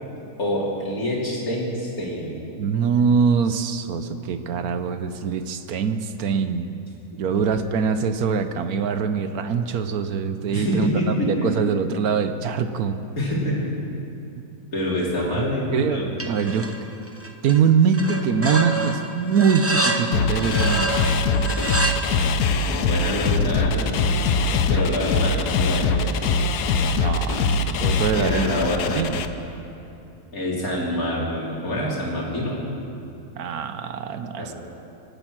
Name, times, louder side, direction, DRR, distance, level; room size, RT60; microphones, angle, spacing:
voice 1, 0.4-2.4 10.5-11.5 13.2-13.7 14.7-16.1 22.7-24.0 24.7-26.3 28.1-29.0 30.3-32.6 34.4-34.5, equal, 65° left, -4 dB, 3.6 m, -26 dB
voice 2, 2.6-6.7 7.2-10.9 11.2-13.0 15.2-15.3 15.7-16.7 17.4-20.9 26.9-28.5 28.9-29.2 33.4-34.5, right 6 dB, 70° right, 9 dB, 1.2 m, -23 dB
sound 1, 16.2-16.8 17.1-17.6 17.9-22.0, right 2 dB, 15° right, 0.6 m, -27 dB
sound 2, 20.1-29.3, left 4 dB, 90° left, 1.3 m, -22 dB
26.0 x 8.9 x 6.1 m, 2.8 s
omnidirectional pair, 1.7 m